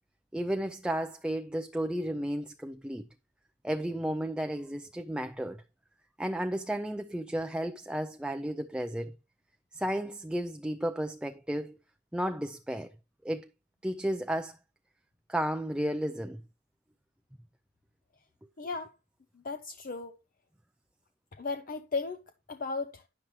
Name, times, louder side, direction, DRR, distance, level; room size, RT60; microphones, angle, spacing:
voice 1, 0.3-3.0 3.6-5.6 6.2-9.1 9.7-11.8 12.1-12.9 13.2-13.5 13.8-14.6 15.3-16.4, right 1 dB, 5° right, 0.4 m, -33 dB
voice 2, 18.6-18.9 19.4-20.1 21.3-22.2 22.5-23.0, left 4 dB, 45° left, 0.6 m, -35 dB
9.9 x 7.3 x 3.0 m
head